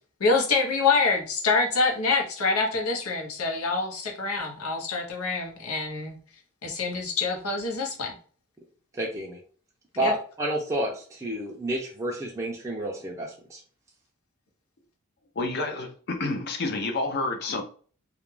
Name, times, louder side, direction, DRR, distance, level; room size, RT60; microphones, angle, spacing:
voice 1, 0.2-6.2 6.6-8.1 10.0-10.1, left 4 dB, 90° left, 0.8 m, -26 dB
voice 2, 8.9-9.4 10.0-13.6, right 1 dB, 15° right, 0.4 m, -30 dB
voice 3, 15.4-17.6, left 3 dB, 50° left, 0.5 m, -29 dB
2.4 x 2.1 x 3.1 m
head